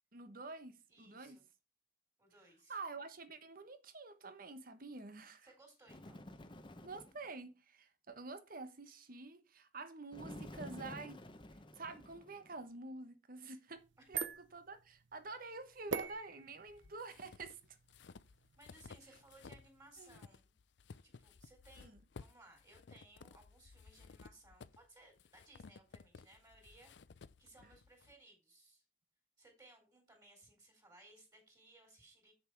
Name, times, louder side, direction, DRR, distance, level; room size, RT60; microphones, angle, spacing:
voice 1, 0.1-1.4 2.7-5.5 6.8-11.2 11.7-13.8 14.1-17.6 20.0-20.2 21.8-22.0, right 3 dB, 50° right, 1.2 m, -48 dB
voice 2, 0.9-1.4 2.2-2.8 5.4-6.3 14.0-14.1 18.6-20.5 21.0-26.9 27.4-28.8 29.4-32.3, right 2 dB, 20° right, 3.8 m, -63 dB
Bird, 5.9-7.3 10.1-12.6, left 1 dB, 25° left, 0.9 m, -51 dB
sound 1, 13.7-19.9, right 6 dB, 80° right, 0.7 m, -46 dB
sound 2, 16.7-19.7 20.0-28.1, left 4 dB, 70° left, 0.5 m, -57 dB
7.9 x 7.1 x 4.7 m
head